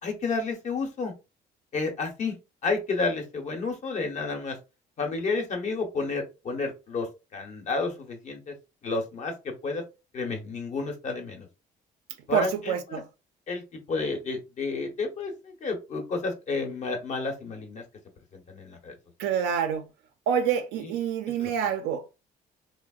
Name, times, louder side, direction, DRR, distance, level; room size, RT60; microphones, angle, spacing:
voice 1, 0.0-1.1 1.7-2.3 2.6-4.6 5.0-7.1 7.3-8.5 8.8-9.8 10.1-11.5 12.3-13.0 13.5-17.8 18.3-19.0 20.8-20.9 21.4-21.5, left 3 dB, 45° left, 0.9 m, -31 dB
voice 2, 12.3-13.0 19.2-19.9 20.3-22.2, right 8 dB, 90° right, 0.5 m, -27 dB
3.4 x 2.0 x 2.3 m
cardioid pair, 110°, 17 cm